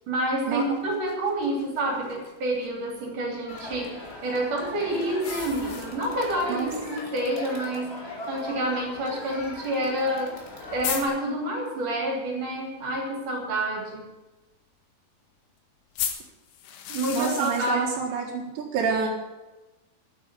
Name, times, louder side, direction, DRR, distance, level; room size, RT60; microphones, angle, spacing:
voice 1, 0.1-10.4 10.7-14.1 16.9-17.8, right 1 dB, 50° right, -1 dB, 4.4 m, -28 dB
sound 1, 0.6-2.7 5.2-6.4 6.7-6.8 7.2-7.3 8.2-8.3 10.1-10.2 10.4-10.5 10.8-11.0 16.0-17.7, left 9 dB, 85° left, 3.6 m, -35 dB
Crowd, 3.5-11.0, left 2 dB, 20° left, 1.8 m, -39 dB
voice 2, 17.1-19.1, right 5 dB, 80° right, -3 dB, 4.0 m, -27 dB
11.0 x 8.7 x 9.6 m, 1.1 s
omnidirectional pair, 5.0 m